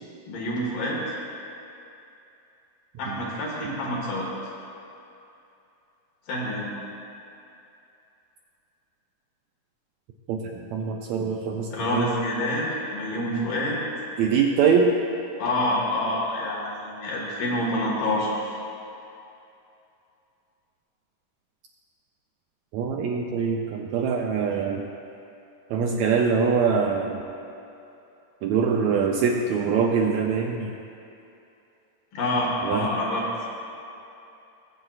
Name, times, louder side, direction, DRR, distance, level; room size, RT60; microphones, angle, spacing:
voice 1, 0.3-1.0 3.0-4.3 6.3-6.7 11.7-13.8 15.4-18.4 32.1-33.5, left 1 dB, 90° left, -4 dB, 3.4 m, -27 dB
voice 2, 10.7-12.1 14.2-14.9 22.7-24.8 25.7-27.2 28.4-30.7 32.6-32.9, right 6 dB, 80° right, 0 dB, 1.6 m, -23 dB
20.0 x 7.7 x 2.4 m, 2.7 s
omnidirectional pair, 3.7 m